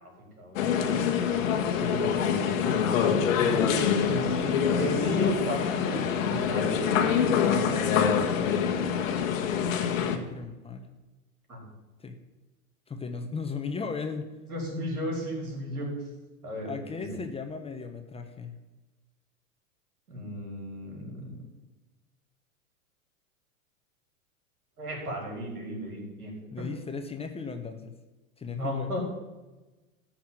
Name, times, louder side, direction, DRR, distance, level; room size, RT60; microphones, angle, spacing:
voice 1, 0.4-0.8 1.7-2.7 3.3-6.9 7.5-8.3 11.5-11.6 14.5-15.9 16.4-17.2 20.1-21.3 24.8-26.7 28.5-29.0, equal, 85° right, -2 dB, 5.1 m, -35 dB
sound 1, 0.6-10.2, left 7 dB, 65° left, 1.5 m, -25 dB
voice 2, 9.5-10.9 12.0-12.2 12.9-14.3 16.6-18.5 26.5-28.0 28.4-29.0, left 5 dB, 15° left, 6 dB, 1.0 m, -37 dB
14.0 x 5.9 x 7.3 m, 1.1 s
hypercardioid pair, 100°, 44 cm